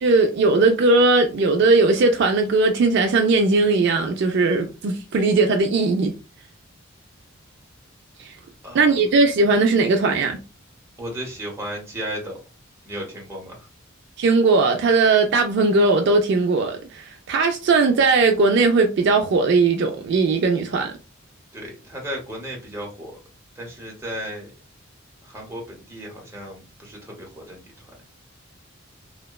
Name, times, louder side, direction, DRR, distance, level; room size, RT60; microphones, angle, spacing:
voice 1, 0.0-6.1 8.2-8.3 8.7-10.4 14.2-20.9, right 3 dB, 55° right, 0.3 m, -18 dB
voice 2, 8.6-9.0 11.0-12.4 12.8-13.7 21.5-23.1 23.5-24.5 25.2-27.9, equal, 15° right, 0.8 m, -34 dB
2.8 x 2.1 x 2.2 m
head